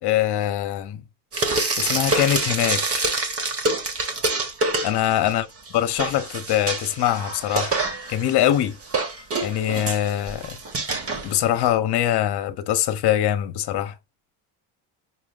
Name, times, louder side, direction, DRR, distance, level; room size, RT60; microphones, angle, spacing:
voice 1, 0.0-1.0 1.8-3.1 4.8-5.5 5.7-7.8 8.1-8.8 9.4-10.6 11.2-14.0, left 12 dB, 50° left, 1.0 m, -23 dB
Frying (food), 1.3-5.3 5.7-11.7, right 3 dB, 30° right, 1.5 m, -26 dB
6.0 x 2.1 x 3.8 m
cardioid pair, 115°, 49 cm